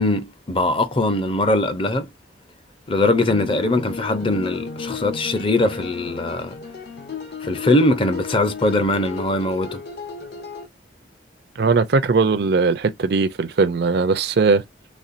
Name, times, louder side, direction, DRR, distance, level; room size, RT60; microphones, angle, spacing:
voice 1, 0.0-2.1 2.9-6.6 7.4-9.8, left 2 dB, 30° left, 0.6 m, -21 dB
sound 1, 3.3-10.7, left 4 dB, 60° left, 1.0 m, -34 dB
voice 2, 11.6-14.6, right 4 dB, 60° right, 0.5 m, -19 dB
4.2 x 3.4 x 2.5 m
head